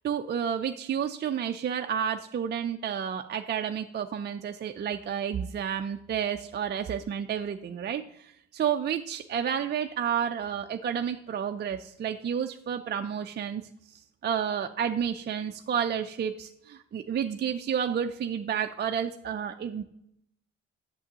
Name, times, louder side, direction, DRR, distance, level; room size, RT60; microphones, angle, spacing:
voice 1, 0.0-8.0 8.5-13.6 14.2-19.8, right 8 dB, 35° right, 5 dB, 0.4 m, -30 dB
8.3 x 6.9 x 2.8 m, 0.74 s
cardioid pair, 90°, 30 cm